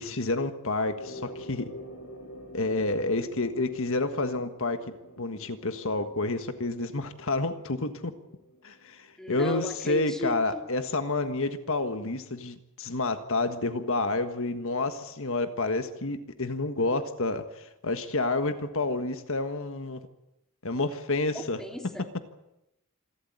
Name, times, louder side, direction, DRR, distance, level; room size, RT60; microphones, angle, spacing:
voice 1, 0.0-1.7 2.5-8.1 8.6-20.0 20.6-21.6, left 2 dB, 60° left, 9 dB, 1.5 m, -29 dB
sound 1, 1.0-9.2, equal, 80° left, 5.1 m, -47 dB
voice 2, 9.2-10.6 21.3-22.2, left 1 dB, ahead, 3 dB, 2.3 m, -36 dB
27.0 x 13.0 x 9.5 m, 0.89 s
head